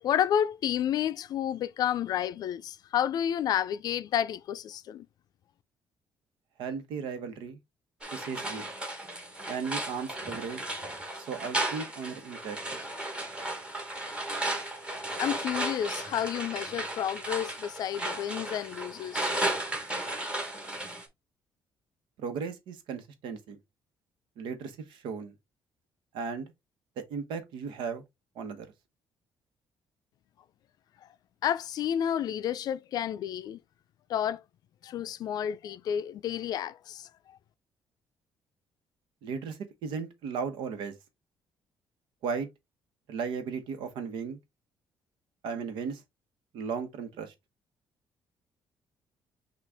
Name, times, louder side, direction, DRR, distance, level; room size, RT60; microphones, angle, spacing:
voice 1, 0.0-5.1 15.1-19.4 31.4-33.6 34.1-34.4 34.8-37.1, left 10 dB, 55° left, 0.4 m, -30 dB
voice 2, 6.6-7.6 8.1-8.7 9.5-10.7 11.2-12.6 22.2-23.6 24.4-25.3 26.1-26.5 27.1-28.0 28.3-28.7 39.2-40.9 42.2-42.5 43.1-44.4 45.4-46.0 46.5-47.3, right 5 dB, 90° right, 1.1 m, -36 dB
sound 1, 8.0-21.1, right 1 dB, 15° right, 1.1 m, -35 dB
6.0 x 2.5 x 3.5 m
cardioid pair, 160°, 8 cm